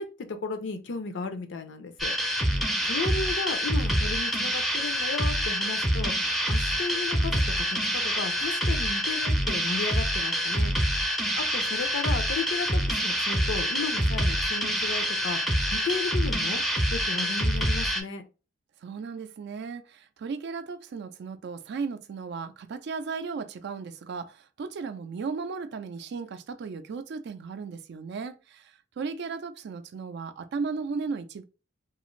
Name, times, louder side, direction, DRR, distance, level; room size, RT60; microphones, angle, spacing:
voice 1, 0.0-2.1 2.8-7.6 7.9-10.7 11.4-16.6 16.9-18.2, left 4 dB, 65° left, 0.5 m, -34 dB
sound 1, 2.0-18.0, equal, ahead, 0.5 m, -26 dB
voice 2, 18.8-31.4, right 5 dB, 60° right, 0.4 m, -35 dB
2.4 x 2.4 x 3.0 m
head